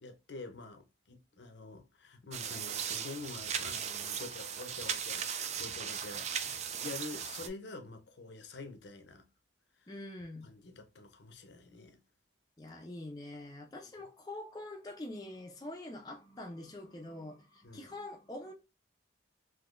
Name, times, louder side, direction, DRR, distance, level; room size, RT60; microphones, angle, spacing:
voice 1, 0.0-9.3 10.4-12.0 17.6-17.9, left 3 dB, 60° left, 0.7 m, -47 dB
sound 1, 2.3-7.5, right 8 dB, 35° right, 0.3 m, -37 dB
voice 2, 9.9-10.5 12.6-18.5, left 1 dB, 20° left, 0.5 m, -45 dB
3.6 x 2.6 x 2.4 m
head